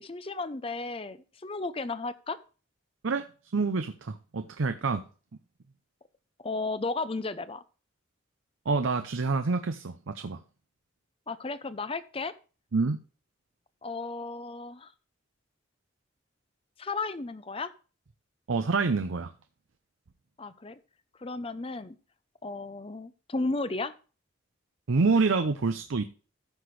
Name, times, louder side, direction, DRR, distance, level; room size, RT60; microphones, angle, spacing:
voice 1, 0.0-2.4 6.4-7.6 11.3-12.3 13.8-14.9 16.8-17.7 20.4-20.8 21.2-22.0 22.4-23.9, left 3 dB, 30° left, 0.6 m, -34 dB
voice 2, 3.5-5.1 8.7-10.4 12.7-13.0 18.5-19.3 24.9-26.0, right 4 dB, 80° right, 0.6 m, -27 dB
14.5 x 6.0 x 3.2 m
head